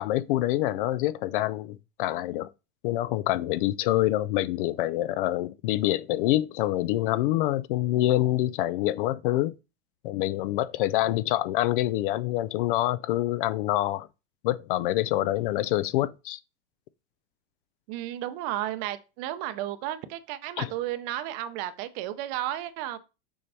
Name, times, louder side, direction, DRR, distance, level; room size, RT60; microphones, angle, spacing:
voice 1, 0.0-2.5 2.8-9.5 10.0-14.1 14.4-16.4 20.6-20.7, left 15 dB, 55° left, 0.4 m, -26 dB
voice 2, 17.9-23.0, right 13 dB, 40° right, 0.6 m, -33 dB
6.9 x 5.4 x 3.4 m
supercardioid pair, 165°, 33 cm